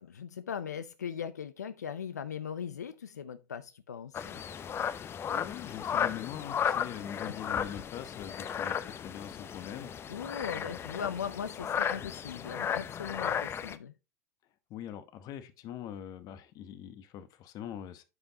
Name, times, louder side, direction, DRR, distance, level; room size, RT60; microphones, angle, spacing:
voice 1, 0.0-4.3 6.9-7.2 10.1-13.9, left 7 dB, 90° left, 0.4 m, -39 dB
sound 1, 4.1-13.8, left 8 dB, 30° left, 0.6 m, -35 dB
voice 2, 5.3-11.1 14.7-18.0, left 10 dB, 45° left, 1.0 m, -43 dB
9.6 x 5.3 x 2.8 m
hypercardioid pair, 90°, 9 cm